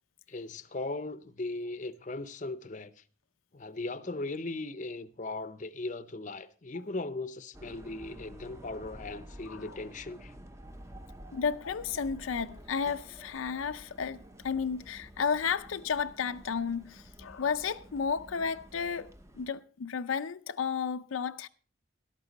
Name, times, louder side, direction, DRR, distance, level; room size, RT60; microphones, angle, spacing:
voice 1, 0.3-2.9 3.5-10.3, left 2 dB, 40° left, 0.6 m, -38 dB
sound 1, 7.5-19.5, equal, 15° right, 0.7 m, -50 dB
voice 2, 11.3-19.1 19.4-21.5, left 6 dB, 80° left, 0.5 m, -32 dB
13.0 x 12.0 x 4.0 m
head